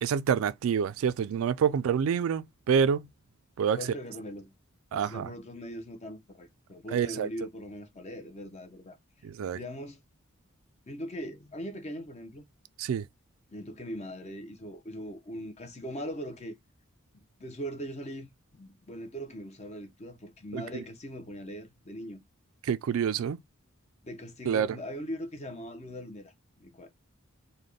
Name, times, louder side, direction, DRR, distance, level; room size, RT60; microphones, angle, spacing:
voice 1, 0.0-3.1 3.6-3.8 4.9-5.3 6.9-7.3 9.2-9.6 12.8-13.0 20.5-20.6 22.6-23.4 24.5-24.8, right 7 dB, 70° right, 0.3 m, -27 dB
voice 2, 3.7-4.5 4.9-9.0 9.5-10.0 10.9-12.4 13.5-16.6 17.1-22.2 24.0-26.9, equal, 30° left, 0.6 m, -40 dB
4.0 x 2.2 x 3.2 m
head